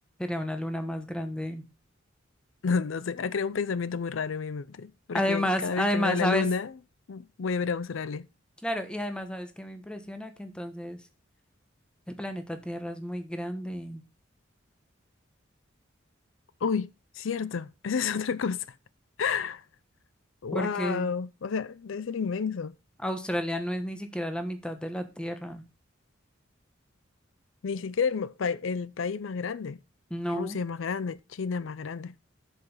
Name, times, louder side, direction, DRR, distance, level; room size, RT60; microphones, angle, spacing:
voice 1, 0.2-1.6 5.1-6.4 8.6-11.0 12.1-14.0 20.5-21.1 23.0-25.6 30.1-30.6, equal, 5° left, 1.2 m, -31 dB
voice 2, 2.6-6.7 7.1-8.3 16.6-16.9 17.1-18.7 19.2-19.6 20.4-22.7 27.6-29.8 30.3-32.1, left 5 dB, 75° left, 0.5 m, -30 dB
7.8 x 7.1 x 5.5 m
head